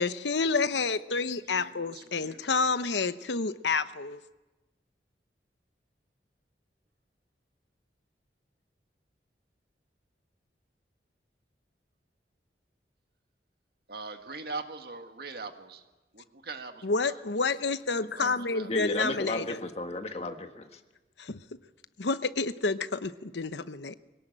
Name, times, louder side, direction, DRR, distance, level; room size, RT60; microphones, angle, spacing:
voice 1, 0.0-4.2 16.8-19.6 21.2-21.4 22.0-23.9, left 4 dB, 80° left, 12 dB, 0.9 m, -29 dB
voice 2, 1.1-2.5 13.9-15.8 16.1-17.2 17.6-17.7 18.0-18.8, right 4 dB, 60° right, 6 dB, 1.7 m, -42 dB
voice 3, 18.7-20.8, left 2 dB, 35° left, 6 dB, 1.6 m, -34 dB
22.0 x 18.0 x 9.1 m, 1.1 s
head